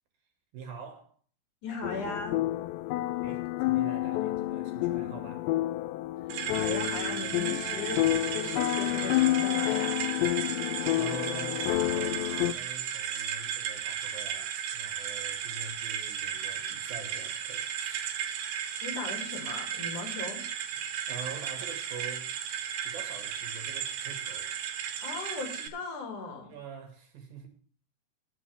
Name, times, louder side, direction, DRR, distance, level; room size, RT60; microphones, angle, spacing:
voice 1, 0.5-1.1 3.2-5.5 10.6-18.3 20.7-22.3 22.8-24.5 26.5-27.5, right 5 dB, 60° right, 3.7 m, -45 dB
voice 2, 1.6-2.4 6.4-10.0 18.8-20.4 25.0-26.5, left 3 dB, 50° left, 3.5 m, -38 dB
sound 1, 1.8-12.5, left 16 dB, 85° left, 2.9 m, -29 dB
sound 2, 6.3-25.7, right 9 dB, 85° right, 3.7 m, -35 dB
20.0 x 7.3 x 3.5 m
omnidirectional pair, 4.9 m